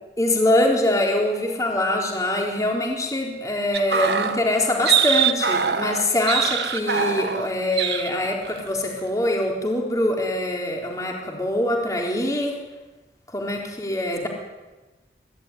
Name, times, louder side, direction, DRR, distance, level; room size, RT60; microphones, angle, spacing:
voice 1, 0.2-12.6 13.3-14.3, left 1 dB, 20° left, 0 dB, 4.0 m, -23 dB
sound 1, 3.7-7.5 7.8-8.1 8.4-8.7, right 7 dB, 75° right, 1.5 m, -23 dB
24.5 x 15.5 x 9.9 m, 1.2 s
head